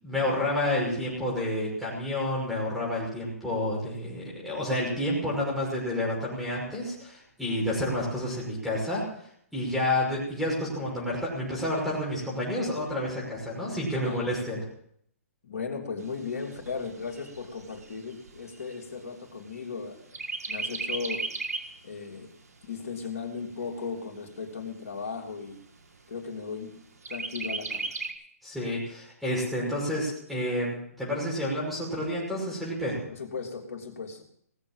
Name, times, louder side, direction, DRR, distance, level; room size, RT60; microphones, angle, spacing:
voice 1, 0.0-9.0 9.5-14.6 28.4-33.0, left 1 dB, ahead, -5 dB, 5.9 m, -29 dB
voice 2, 15.4-20.1 20.5-21.2 21.8-22.3 22.6-25.6 26.1-26.7 27.1-27.9 33.1-34.2, left 5 dB, 70° left, 2 dB, 3.3 m, -36 dB
Chirp tweet, 16.0-19.7 20.1-21.8 22.2-22.3 22.7-23.7 24.3-24.4 24.7-24.8 25.3-25.8 27.0-28.1, right 3 dB, 85° right, 1.6 m, -36 dB
18.5 x 7.8 x 7.5 m, 0.68 s
hypercardioid pair, 135°, 8 cm